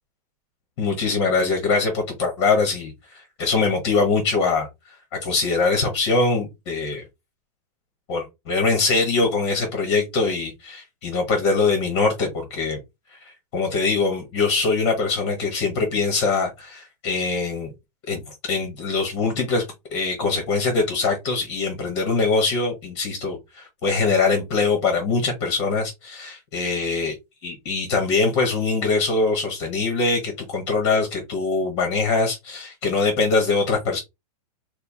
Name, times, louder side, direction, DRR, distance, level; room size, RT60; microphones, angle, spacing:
voice 1, 0.8-5.0 5.2-7.0 8.1-12.8 13.2-17.7 18.1-19.6 19.9-27.1 27.4-34.0, left 4 dB, 30° left, 1.2 m, -23 dB
4.5 x 2.3 x 3.4 m
supercardioid pair, 175°, 20 cm